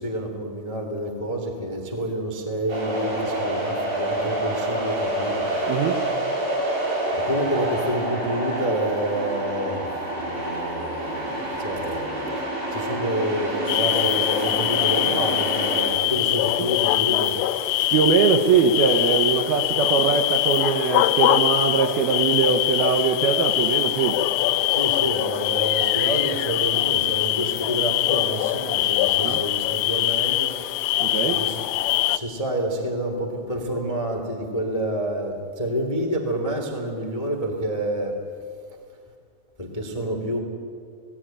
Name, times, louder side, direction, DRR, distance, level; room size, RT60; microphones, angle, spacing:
voice 1, 0.0-5.7 7.1-12.4 12.7-17.9 20.1-20.2 24.7-30.5 31.3-31.6 32.1-38.1 39.6-40.4, right 1 dB, 30° left, 2 dB, 0.6 m, -28 dB
sound 1, 2.7-15.9, right 1 dB, 50° right, 6.2 m, -27 dB
voice 2, 5.7-6.0 16.6-16.7 17.9-24.2 29.2-29.4 31.0-31.4, right 6 dB, 70° right, 4 dB, 2.5 m, -22 dB
sound 2, 13.7-32.2, left 15 dB, 85° left, 3.2 m, -23 dB
19.5 x 17.5 x 8.9 m, 2.2 s
omnidirectional pair, 5.6 m